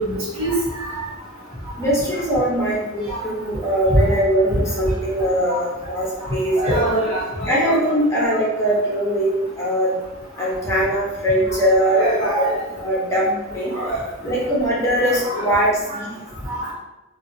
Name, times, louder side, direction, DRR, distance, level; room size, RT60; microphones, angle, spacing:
voice 1, 0.1-0.5 6.6-7.8 11.9-12.3 13.8-13.9 15.3-15.4, right 1 dB, 85° right, -8 dB, 1.2 m, -23 dB
voice 2, 1.8-6.8 7.4-9.9 10.4-12.1 12.3-12.5 12.8-13.7 14.2-16.1, right 1 dB, 15° left, -6 dB, 0.8 m, -21 dB
2.7 x 2.6 x 2.7 m, 1.0 s
head